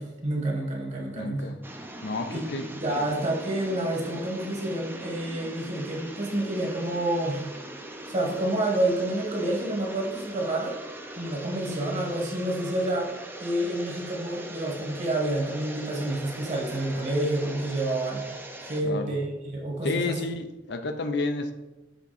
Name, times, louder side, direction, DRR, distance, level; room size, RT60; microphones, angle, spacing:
voice 1, 0.0-1.5 2.3-2.4 2.8-7.4 8.1-10.7 11.2-13.1 13.4-18.2 18.6-20.2, right 1 dB, 40° right, -1 dB, 1.5 m, -28 dB
voice 2, 1.2-1.6 2.0-2.7 18.8-19.1 19.8-21.5, left 3 dB, 65° left, 7 dB, 0.6 m, -30 dB
sound 1, 1.6-18.8, right 1 dB, 10° right, 0.6 m, -41 dB
7.0 x 3.6 x 4.1 m, 1.0 s
head